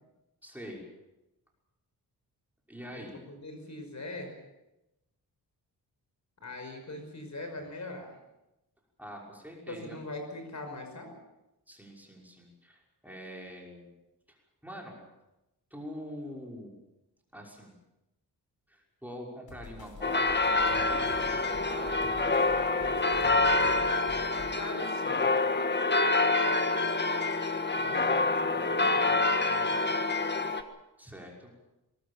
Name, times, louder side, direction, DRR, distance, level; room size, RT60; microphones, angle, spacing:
voice 1, 0.4-0.9 2.7-3.2 9.0-10.0 11.7-13.9 14.3-14.4 14.6-15.0 15.7-16.7 17.3-17.7 18.7-22.3 27.9-28.1 31.0-31.6, equal, 5° right, -1 dB, 5.9 m, -45 dB
voice 2, 2.9-4.3 6.4-8.1 9.7-11.1 24.5-25.3 27.7-29.8, left 2 dB, 45° left, 5 dB, 5.7 m, -42 dB
sound 1, 19.5-24.6, left 3 dB, 65° left, 4.9 m, -46 dB
sound 2, 20.0-30.6, left 3 dB, 25° left, 1.6 m, -27 dB
22.5 x 20.5 x 7.3 m, 0.95 s
wide cardioid pair, 120°, 39 cm